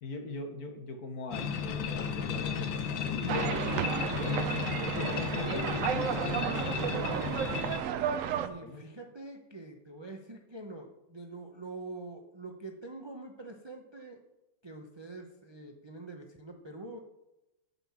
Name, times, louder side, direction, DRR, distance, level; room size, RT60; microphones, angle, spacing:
voice 1, 0.0-3.5 4.2-4.6 4.9-7.1 8.6-8.8, left 3 dB, 55° left, 5 dB, 1.5 m, -40 dB
sound 1, 1.3-7.8, left 7 dB, 80° left, 1.6 m, -34 dB
sound 2, 3.3-8.5, right 9 dB, 80° right, 0.7 m, -32 dB
voice 2, 8.4-14.2 14.6-17.0, right 2 dB, 35° right, 3 dB, 0.4 m, -45 dB
8.1 x 5.7 x 7.2 m, 0.95 s
omnidirectional pair, 2.0 m